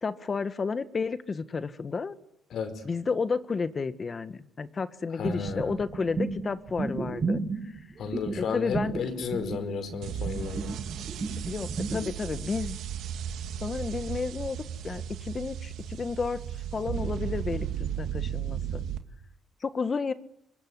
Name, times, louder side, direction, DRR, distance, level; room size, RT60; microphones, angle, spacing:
voice 1, 0.0-2.2 2.8-7.8 8.4-9.0 11.5-12.8 13.6-14.6 14.8-16.4 16.7-18.9 19.6-20.1, left 4 dB, 35° left, 12 dB, 1.7 m, -32 dB
voice 2, 2.5-2.8 5.1-5.7 8.0-10.7, left 6 dB, 65° left, 9 dB, 5.1 m, -33 dB
sound 1, 5.2-12.0, right 4 dB, 40° right, 6.9 m, -32 dB
sound 2, 10.0-19.0, right 9 dB, 80° right, 2.1 m, -35 dB
25.0 x 22.5 x 10.0 m, 0.79 s
cardioid pair, 90°, 0 cm